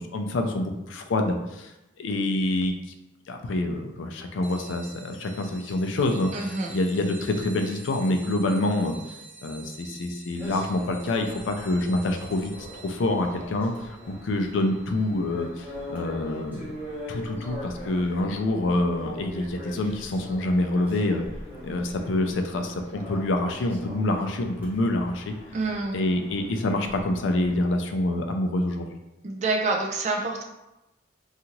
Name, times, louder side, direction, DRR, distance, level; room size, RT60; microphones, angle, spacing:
voice 1, 0.0-1.7 2.0-2.7 3.3-8.9 9.4-14.0 14.2-16.7 17.1-21.2 21.6-25.3 25.9-28.9, left 1 dB, 75° left, 4 dB, 0.4 m, -26 dB
sound 1, 4.4-16.5, right 3 dB, 20° left, 0.5 m, -48 dB
voice 2, 6.3-6.8 25.5-26.0 29.2-30.4, right 3 dB, 35° right, 1 dB, 0.4 m, -27 dB
sound 2, 10.4-27.6, equal, 10° right, 0.8 m, -42 dB
2.7 x 2.4 x 2.9 m, 0.96 s
head